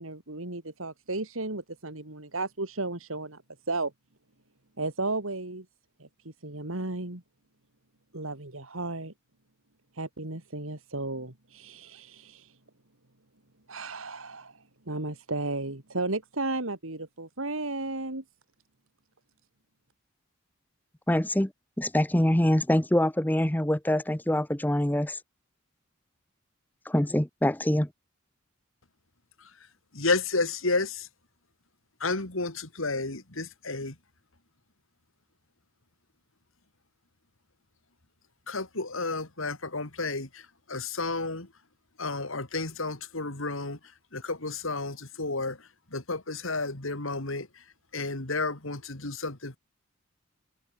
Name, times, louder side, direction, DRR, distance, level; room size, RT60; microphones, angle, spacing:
voice 1, 0.0-3.4 3.7-3.9 4.8-5.7 6.0-7.2 8.1-9.1 9.9-12.6 13.7-18.2, right 2 dB, 80° right, 3.0 m, -34 dB
voice 2, 21.1-21.5 21.8-25.2 26.9-27.9, left 1 dB, 10° left, 0.9 m, -24 dB
voice 3, 30.0-30.9 32.0-32.5 32.8-33.9 38.5-40.3 40.7-41.5 42.0-43.8 44.1-45.5 45.9-47.4 47.9-49.6, left 3 dB, 75° left, 3.1 m, -31 dB
head